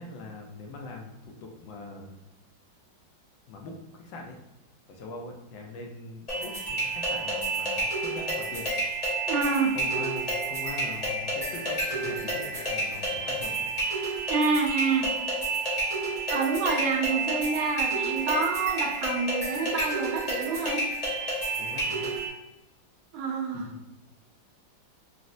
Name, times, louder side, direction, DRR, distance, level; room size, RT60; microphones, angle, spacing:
voice 1, 0.0-2.1 3.5-4.4 4.9-8.7 9.7-13.7 21.6-22.1 23.5-23.8, left 3 dB, 75° left, 1 dB, 1.3 m, -42 dB
sound 1, 6.3-22.3, right 2 dB, 50° left, 0.4 m, -30 dB
voice 2, 9.3-9.7 14.3-15.1 16.3-20.9 23.1-23.7, right 4 dB, 80° right, 1 dB, 1.4 m, -27 dB
4.1 x 2.0 x 2.5 m, 0.94 s
omnidirectional pair, 2.2 m